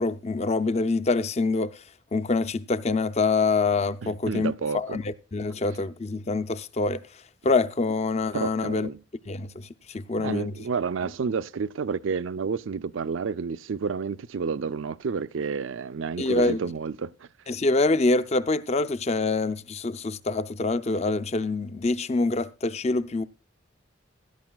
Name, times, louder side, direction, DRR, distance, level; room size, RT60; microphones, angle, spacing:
voice 1, 0.0-1.7 2.1-7.0 7.4-8.9 9.3-10.5 16.2-16.6 17.5-23.2, left 3 dB, 35° left, 0.5 m, -25 dB
voice 2, 4.0-5.0 8.3-9.0 10.2-17.3, right 5 dB, 80° right, 0.5 m, -30 dB
16.5 x 12.0 x 2.3 m
head